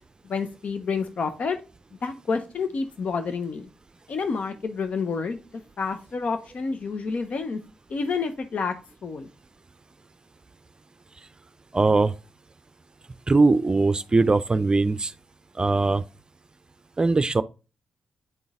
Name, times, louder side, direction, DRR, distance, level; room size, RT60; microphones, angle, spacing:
voice 1, 0.2-1.6 2.0-3.7 4.1-7.6 7.9-8.7 9.0-9.3, left 5 dB, 60° left, 0.8 m, -29 dB
voice 2, 11.7-12.1 13.3-15.1 15.6-16.0 17.0-17.4, right 3 dB, 30° right, 0.5 m, -20 dB
9.4 x 3.9 x 3.6 m
hypercardioid pair, 40°, 3 cm